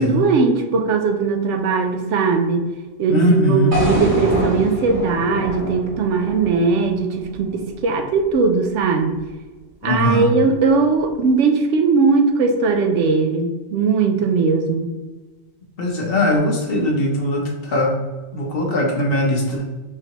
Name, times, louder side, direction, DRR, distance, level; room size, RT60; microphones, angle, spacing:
voice 1, 0.0-2.7 3.0-9.2 9.8-14.9, right 4 dB, 80° right, 4 dB, 0.9 m, -19 dB
voice 2, 3.1-3.8 9.8-10.2 15.8-17.9 18.3-19.6, left 1 dB, 55° left, 0 dB, 1.1 m, -20 dB
sound 1, 3.7-7.8, right 1 dB, 45° right, 1.1 m, -26 dB
4.7 x 3.4 x 3.0 m, 1.2 s
omnidirectional pair, 1.2 m